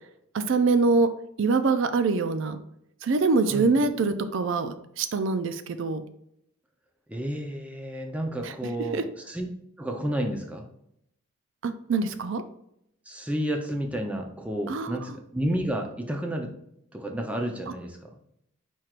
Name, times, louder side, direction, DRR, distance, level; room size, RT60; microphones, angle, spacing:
voice 1, 0.3-1.1 1.4-2.6 3.0-6.0 8.4-8.5 8.9-9.0 11.6-12.4 14.7-15.2, right 4 dB, 60° right, 10 dB, 0.4 m, -24 dB
voice 2, 7.1-9.5 9.8-10.7 13.1-16.5 16.9-18.1, equal, 5° right, 2 dB, 0.5 m, -31 dB
4.6 x 4.5 x 2.4 m, 0.75 s
head